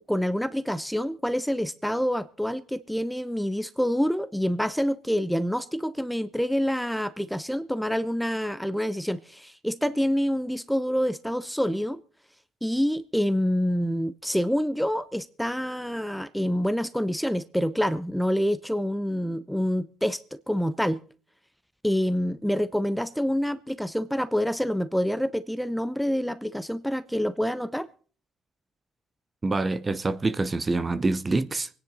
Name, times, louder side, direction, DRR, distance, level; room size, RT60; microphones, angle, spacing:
voice 1, 0.1-12.0 12.6-21.0 21.8-27.9, equal, ahead, 0.7 m, -27 dB
voice 2, 29.4-31.7, right 3 dB, 25° right, 0.9 m, -26 dB
24.0 x 10.0 x 4.0 m
supercardioid pair, 65°, 0 cm